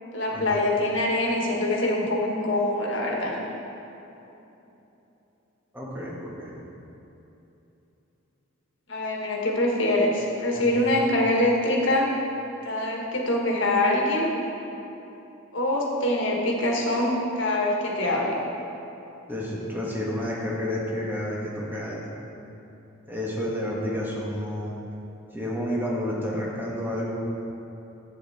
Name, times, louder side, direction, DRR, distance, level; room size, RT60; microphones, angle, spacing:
voice 1, 0.1-3.4 8.9-12.1 12.6-14.3 15.5-18.4, left 1 dB, 60° left, -2 dB, 1.6 m, -24 dB
voice 2, 5.7-6.6 10.5-10.9 19.3-22.1 23.1-24.8 25.3-27.2, left 1 dB, 10° right, -5 dB, 1.6 m, -30 dB
11.0 x 8.5 x 4.3 m, 3.0 s
head